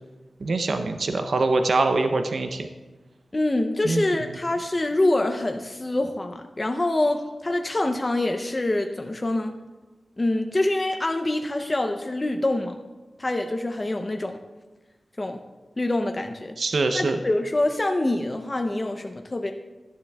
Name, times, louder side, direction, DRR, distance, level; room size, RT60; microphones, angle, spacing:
voice 1, 0.4-2.7 3.8-4.0 4.3-4.4 16.6-17.2, right 3 dB, 65° right, 6 dB, 0.5 m, -23 dB
voice 2, 3.3-9.5 10.2-12.8 13.2-14.4 15.2-15.4 15.8-16.5 16.9-19.5, left 1 dB, 25° left, 5 dB, 0.5 m, -25 dB
12.0 x 10.5 x 2.3 m, 1.2 s
wide cardioid pair, 130°, 0 cm